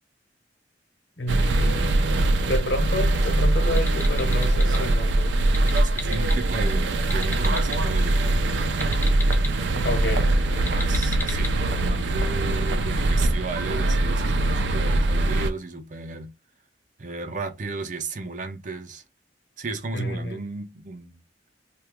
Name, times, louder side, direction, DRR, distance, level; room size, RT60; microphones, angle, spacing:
voice 1, 1.2-1.9 2.4-5.4 5.7-5.9 9.8-10.3 19.9-20.4, left 1 dB, 70° left, 1.0 m, -30 dB
sound 1, 1.3-15.5, right 2 dB, 90° right, 0.5 m, -22 dB
sound 2, 3.7-4.8 5.4-6.4 7.0-7.8 8.7-9.5 10.5-11.5, left 2 dB, 10° left, 0.6 m, -35 dB
voice 2, 5.8-8.4 10.1-16.3 17.0-19.0 19.6-21.2, right 3 dB, 45° right, 0.6 m, -34 dB
2.8 x 2.3 x 3.5 m
head